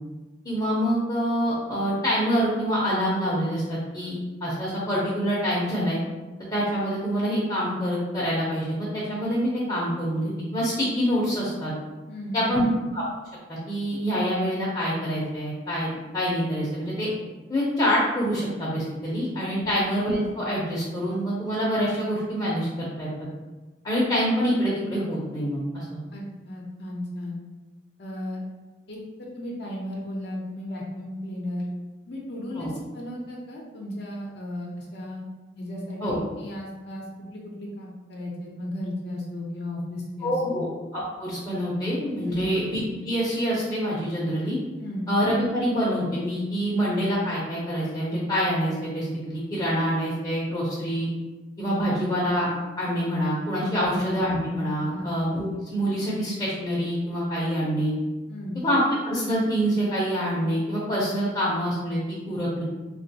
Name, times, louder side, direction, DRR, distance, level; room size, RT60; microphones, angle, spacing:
voice 1, 0.4-4.2 4.4-6.0 6.5-11.7 12.3-12.6 12.9-13.0 13.5-17.1 17.5-23.1 23.8-26.0 32.5-32.7 36.0-36.2 40.2-40.7 40.9-44.6 45.1-51.1 51.6-52.5 52.8-55.4 55.7-57.9 58.5-62.6, equal, 20° left, -7 dB, 0.6 m, -26 dB
voice 2, 12.1-12.7 19.6-19.7 26.1-27.4 28.0-28.4 28.9-31.6 32.1-35.2 35.6-37.0 37.3-40.6 42.3-42.5 44.8-45.1 53.8-54.0 54.9-55.2 58.3-58.6, left 1 dB, 60° left, -3 dB, 0.6 m, -35 dB
3.3 x 2.2 x 2.7 m, 1.2 s
head